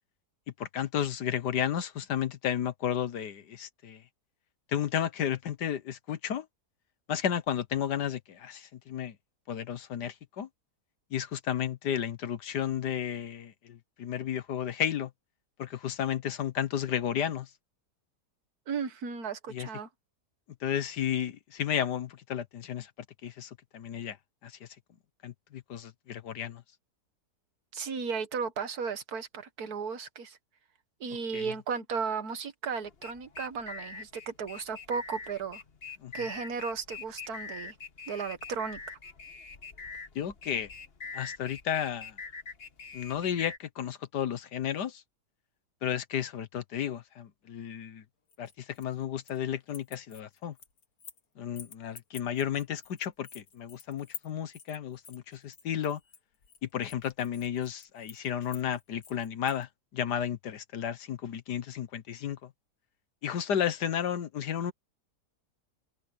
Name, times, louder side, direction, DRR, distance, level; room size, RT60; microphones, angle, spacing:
voice 1, 0.6-4.0 4.7-6.5 7.1-9.2 9.5-10.5 11.1-15.1 15.6-17.5 19.5-19.7 20.6-22.9 23.2-24.2 24.4-24.7 25.2-26.6 31.3-31.5 36.0-36.1 40.2-40.7 41.1-42.2 42.9-45.0 45.8-48.0 48.4-50.5 51.4-56.0 56.6-62.5 63.2-64.7, left 9 dB, 85° left, 1.7 m, -33 dB
voice 2, 18.7-19.9 27.7-30.4 31.0-35.6 36.1-37.8 38.1-38.8, right 5 dB, 65° right, 1.8 m, -35 dB
sound 1, 32.8-43.6, left 4 dB, 40° left, 1.6 m, -44 dB
sound 2, 48.3-49.4 49.7-51.2 51.6-59.6, left 7 dB, 60° left, 2.2 m, -49 dB
open air
omnidirectional pair, 1.7 m